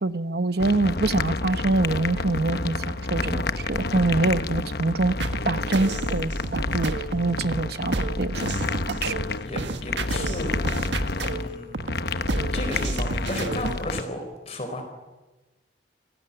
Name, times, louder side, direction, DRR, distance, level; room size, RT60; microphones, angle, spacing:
voice 1, 0.0-5.1 5.5-9.2, right 2 dB, 60° right, 12 dB, 1.0 m, -25 dB
sound 1, 0.6-14.0, left 3 dB, 60° left, 1.0 m, -30 dB
sound 2, 5.2-13.9, right 2 dB, 85° right, 1.6 m, -31 dB
voice 2, 9.4-10.6 11.2-11.9 12.5-14.2 14.5-14.8, left 1 dB, 35° left, 4 dB, 4.3 m, -33 dB
28.5 x 19.0 x 9.9 m, 1.2 s
head